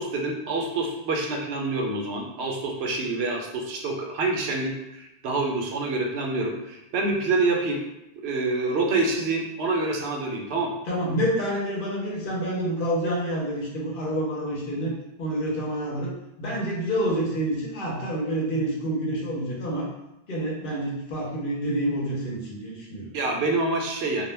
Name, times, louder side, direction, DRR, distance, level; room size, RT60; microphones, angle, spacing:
voice 1, 0.0-7.8 8.2-10.7 23.1-24.2, right 3 dB, 80° right, 1 dB, 0.8 m, -27 dB
voice 2, 10.9-14.9 15.2-19.9 20.3-23.1, right 1 dB, 60° left, -3 dB, 0.8 m, -28 dB
2.2 x 2.1 x 3.1 m, 0.88 s
omnidirectional pair, 1.1 m